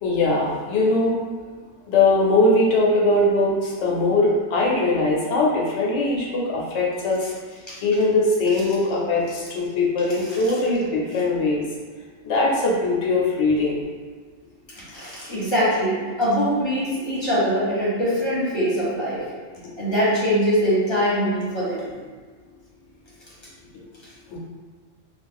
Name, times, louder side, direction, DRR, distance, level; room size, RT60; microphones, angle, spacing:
voice 1, 0.0-1.2 1.9-7.3 7.8-11.6 12.2-13.8 19.6-19.7 23.7-23.8 24.3-24.4, left 2 dB, 70° left, -3 dB, 0.9 m, -21 dB
voice 2, 14.7-19.2 19.8-21.9, equal, 25° left, -8 dB, 0.9 m, -22 dB
2.4 x 2.4 x 3.4 m, 1.5 s
omnidirectional pair, 1.3 m